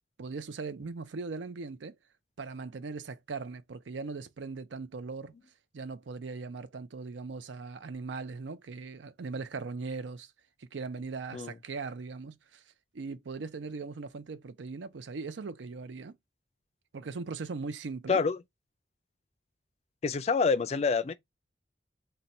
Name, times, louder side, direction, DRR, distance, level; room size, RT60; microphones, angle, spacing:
voice 1, 0.2-2.0 2.4-5.3 5.7-10.3 10.6-12.6 12.9-16.2 16.9-18.2, right 4 dB, 80° right, 0.5 m, -39 dB
voice 2, 20.0-21.1, left 5 dB, 35° left, 0.3 m, -27 dB
4.0 x 2.2 x 4.1 m
head